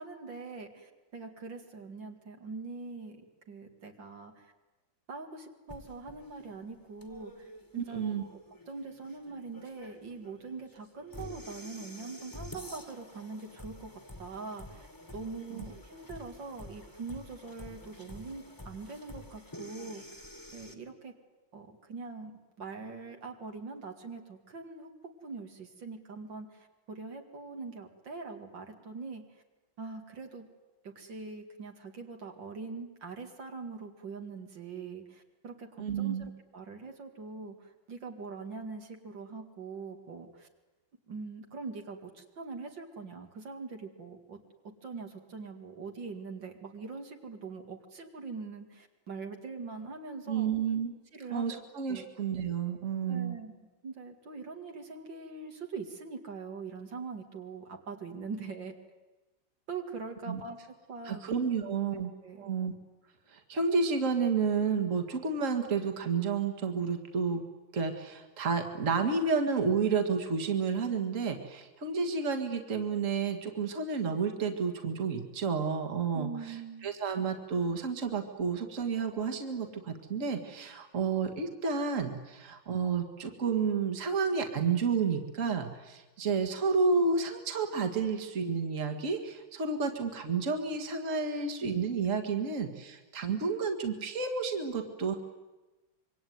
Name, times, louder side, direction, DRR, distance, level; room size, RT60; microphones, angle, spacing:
voice 1, 0.0-4.5 5.1-8.4 8.7-13.9 14.2-14.9 15.1-20.2 20.5-21.1 21.5-24.9 25.2-29.4 29.8-30.5 30.8-40.5 41.1-44.4 44.8-50.5 51.1-51.6 51.9-52.1 53.1-53.5 53.8-58.7 59.7-61.2 61.9-62.5 76.1-76.9, right 4 dB, 65° right, 4 dB, 2.9 m, -43 dB
sound 1, 5.7-20.7, left 1 dB, 10° left, 1.9 m, -49 dB
voice 2, 7.7-8.2 35.8-36.3 50.3-50.9 51.3-53.4 60.3-60.4 61.1-62.1 62.4-62.7 63.3-67.4 67.7-76.6 76.8-95.2, right 5 dB, 40° right, 5 dB, 2.3 m, -31 dB
26.0 x 23.5 x 9.5 m, 1.1 s
omnidirectional pair, 2.1 m